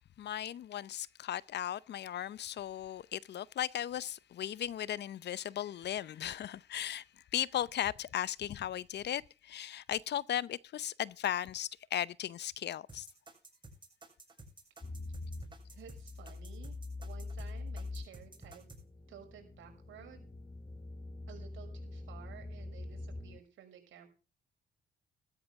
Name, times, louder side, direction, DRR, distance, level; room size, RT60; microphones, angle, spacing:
voice 1, 0.2-13.1, left 11 dB, 60° left, 0.7 m, -37 dB
sound 1, 12.9-18.8, right 2 dB, 25° right, 7.2 m, -53 dB
sound 2, 14.8-23.4, left 2 dB, 20° left, 1.2 m, -44 dB
voice 2, 15.7-18.6 19.1-20.3 21.3-24.1, right 9 dB, 80° right, 6.0 m, -54 dB
14.5 x 13.5 x 3.6 m
cardioid pair, 90°, 20 cm